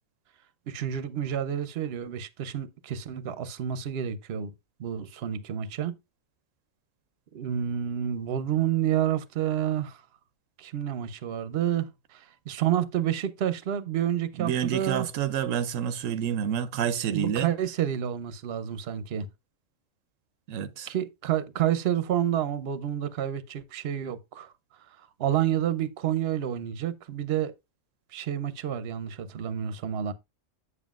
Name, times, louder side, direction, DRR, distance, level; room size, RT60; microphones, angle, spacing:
voice 1, 0.7-4.5 4.8-6.0 7.3-10.0 10.6-15.1 17.1-19.3 20.9-24.5 24.9-27.5 28.1-30.1, right 10 dB, 60° right, 0.9 m, -29 dB
voice 2, 14.4-17.5 20.5-20.9, right 9 dB, 85° right, 1.0 m, -28 dB
8.3 x 7.3 x 2.4 m
omnidirectional pair, 1.3 m